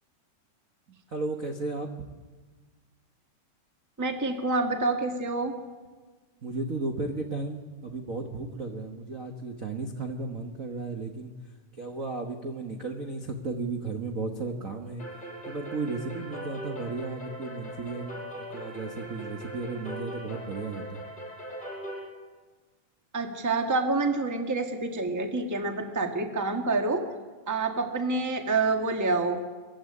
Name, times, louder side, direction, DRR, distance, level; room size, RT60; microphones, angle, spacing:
voice 1, 1.1-1.9 6.4-11.3 11.8-15.0 15.4-21.0, right 3 dB, 70° right, 4 dB, 0.7 m, -34 dB
voice 2, 4.0-5.5 23.1-27.0 27.5-29.4, right 3 dB, 15° right, 5 dB, 0.6 m, -27 dB
sound 1, 15.0-22.1, equal, 15° left, 7.3 m, -40 dB
24.0 x 15.0 x 9.8 m, 1.3 s
omnidirectional pair, 3.7 m